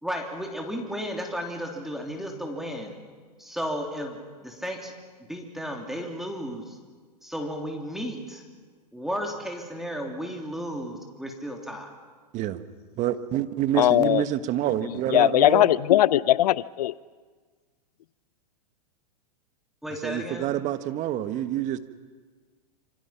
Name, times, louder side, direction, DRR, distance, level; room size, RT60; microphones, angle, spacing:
voice 1, 0.0-3.0 3.4-4.9 5.2-6.8 7.2-8.4 8.9-11.9 19.8-20.5, equal, ahead, 3.2 m, -34 dB
voice 2, 13.0-15.7 20.0-21.8, right 12 dB, 35° right, 1.5 m, -27 dB
voice 3, 13.7-14.2 15.1-16.9, left 13 dB, 65° left, 0.7 m, -19 dB
27.0 x 25.0 x 5.9 m
hypercardioid pair, 115°, 21 cm